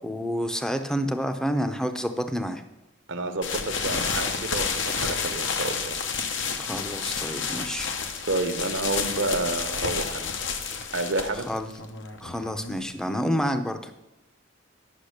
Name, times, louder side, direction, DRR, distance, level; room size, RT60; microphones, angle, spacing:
voice 1, 0.0-2.6 6.6-7.9 11.5-11.7 12.2-13.9, equal, 5° left, 7 dB, 0.7 m, -29 dB
voice 2, 3.1-6.0 8.3-10.2 10.9-11.5, right 2 dB, 70° right, 7 dB, 1.1 m, -29 dB
sound 1, 3.4-13.0, left 5 dB, 70° left, 1.0 m, -30 dB
10.5 x 6.2 x 6.5 m, 0.95 s
head